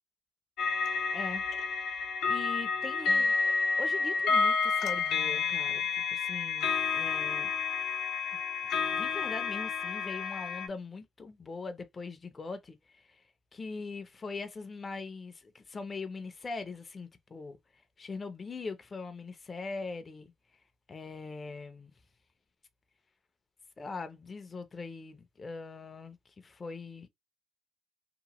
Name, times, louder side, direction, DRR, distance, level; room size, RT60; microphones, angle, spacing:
sound 1, 0.6-10.7, left 5 dB, 80° left, 0.6 m, -30 dB
voice 1, 1.1-1.4 1.9-3.5 3.8-7.5 8.9-13.2 13.5-17.6 18.0-20.3 20.9-21.9 23.8-27.1, left 4 dB, 35° left, 0.5 m, -41 dB
2.9 x 2.0 x 2.9 m
cardioid pair, 90°, 0 cm